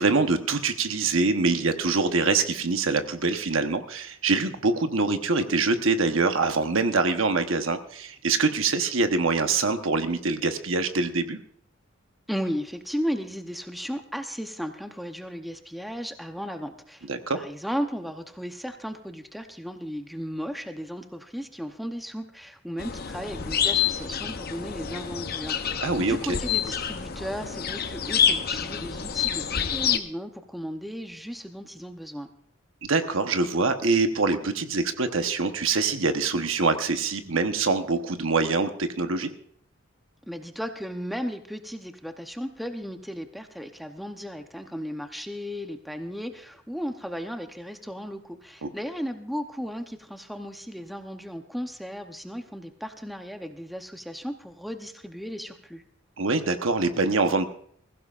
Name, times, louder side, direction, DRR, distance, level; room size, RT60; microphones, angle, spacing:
voice 1, 0.0-11.4 17.1-17.4 25.8-26.4 32.8-39.3 48.6-48.7 56.2-57.4, right 3 dB, 70° right, 7 dB, 1.1 m, -24 dB
voice 2, 12.3-17.1 17.3-25.7 26.0-32.3 40.3-55.8, equal, ahead, 6 dB, 0.8 m, -35 dB
sound 1, 22.8-30.0, left 8 dB, 45° left, 0.7 m, -27 dB
21.0 x 15.5 x 2.5 m, 0.62 s
head